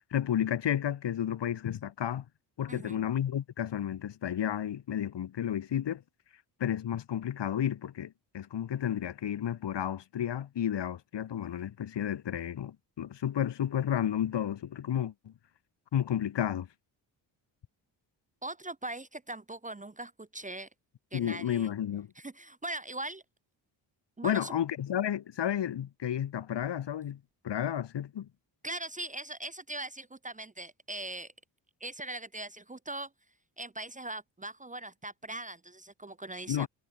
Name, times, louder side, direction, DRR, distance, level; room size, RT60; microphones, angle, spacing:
voice 1, 0.1-2.2 2.6-6.0 6.6-15.3 15.9-16.7 21.1-22.1 24.2-27.2 27.4-28.3 36.5-36.7, left 10 dB, 60° left, 1.8 m, -32 dB
voice 2, 2.7-3.0 18.4-20.7 21.1-21.7 22.2-23.2 24.2-24.5 28.6-31.3 31.8-33.1 33.6-36.7, right 2 dB, 15° right, 1.0 m, -40 dB
cardioid pair, 65°, 47 cm